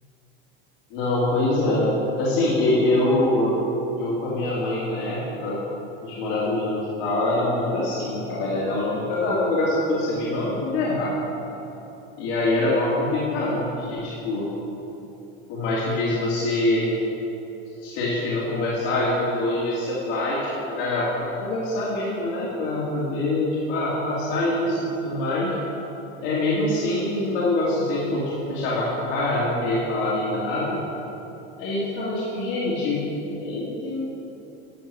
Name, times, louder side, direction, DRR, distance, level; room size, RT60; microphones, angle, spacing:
voice 1, 0.9-1.9 2.2-3.6 4.0-5.6 6.0-11.2 12.2-14.5 15.5-16.9 17.8-25.5 26.2-30.8 31.6-34.1, left 2 dB, 70° left, -8 dB, 2.7 m, -24 dB
12.5 x 6.7 x 6.1 m, 3.0 s
supercardioid pair, 135°, 29 cm